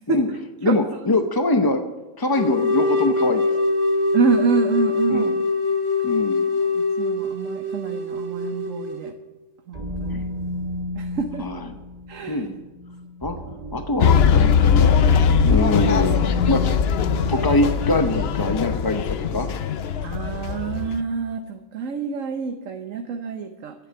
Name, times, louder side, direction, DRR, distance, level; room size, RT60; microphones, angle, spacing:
voice 1, 0.6-1.8 2.2-3.4 5.1-5.3 6.0-6.5 11.4-11.7 12.3-12.6 13.2-13.4 13.7-14.9 15.5-16.2 16.5-16.7 17.3-19.5, left 2 dB, 25° left, 6 dB, 0.5 m, -23 dB
sound 1, 2.4-9.1, left 3 dB, 55° right, 1.8 m, -23 dB
voice 2, 4.1-5.4 6.7-9.1 9.7-10.2 11.0-11.5 12.1-12.5 15.4-15.8 20.0-23.7, right 5 dB, 80° right, 5 dB, 1.3 m, -27 dB
sound 2, 9.7-18.9, left 1 dB, 30° right, 1.3 m, -33 dB
sound 3, 14.0-21.0, left 7 dB, 60° left, 0.8 m, -20 dB
11.0 x 8.5 x 9.6 m, 1.2 s
omnidirectional pair, 1.3 m